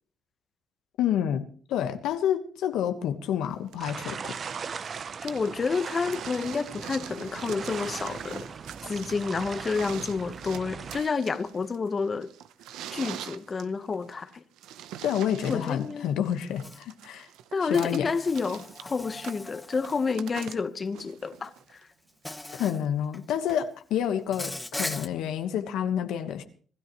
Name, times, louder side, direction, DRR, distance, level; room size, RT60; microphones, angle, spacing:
voice 1, 1.0-1.4 1.7-4.3 15.0-17.3 17.6-18.1 22.5-26.4, left 9 dB, 85° left, 1.3 m, -28 dB
sound 1, 3.7-21.8 22.9-23.0, right 11 dB, 90° right, 0.8 m, -44 dB
sound 2, 3.8-11.0, right 6 dB, 45° right, 0.6 m, -39 dB
voice 2, 5.2-8.5 8.8-12.3 12.9-14.4 15.5-16.1 17.5-21.8, left 4 dB, 35° left, 1.1 m, -29 dB
Insect, 16.6-16.8 17.7-20.3 21.4-21.6 22.2-22.8 23.1-23.6 24.3-25.1, left 2 dB, 10° left, 0.9 m, -39 dB
25.5 x 12.5 x 3.1 m
cardioid pair, 90°, 0 cm